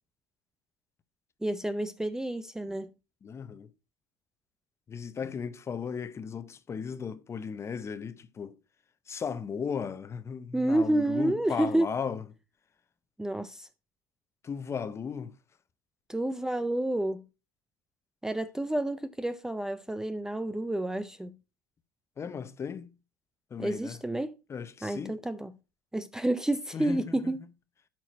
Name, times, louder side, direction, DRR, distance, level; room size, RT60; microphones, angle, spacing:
voice 1, 1.4-2.9 10.5-11.9 13.2-13.7 16.1-17.2 18.2-21.4 23.6-24.4 24.8-25.5 25.9-27.4, right 1 dB, 5° right, 0.5 m, -29 dB
voice 2, 3.2-3.7 4.9-8.5 9.1-12.2 14.4-15.3 22.2-22.9 23.5-24.0 24.5-25.1 26.7-27.3, left 6 dB, 30° left, 0.9 m, -36 dB
12.5 x 4.6 x 4.4 m
hypercardioid pair, 85°, 10 cm